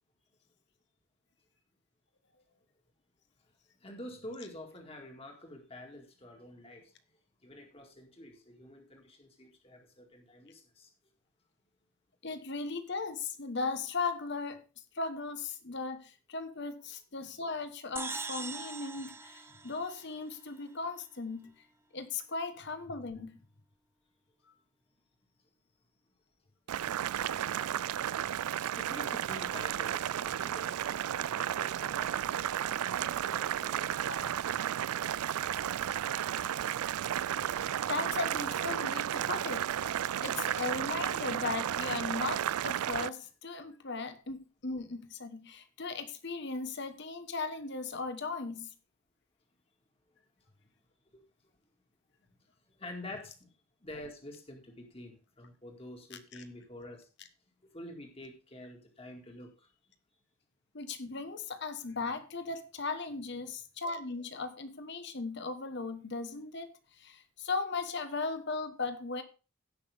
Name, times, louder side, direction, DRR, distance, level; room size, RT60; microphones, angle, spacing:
voice 1, 3.8-6.9 7.4-10.9 28.8-32.1 33.1-33.9 36.1-36.5 51.1-51.2 52.8-53.5 53.8-57.1 57.7-59.7, left 1 dB, 25° left, 2.1 m, -48 dB
voice 2, 12.2-14.6 15.0-21.5 21.9-23.3 34.0-34.3 37.5-37.6 37.9-48.7 60.7-66.7 67.0-69.2, left 3 dB, 50° left, 1.2 m, -37 dB
sound 1, 18.0-20.5, right 4 dB, 10° right, 0.6 m, -42 dB
Boiling, 26.7-43.1, right 10 dB, 90° right, 0.4 m, -33 dB
16.5 x 6.0 x 3.5 m
head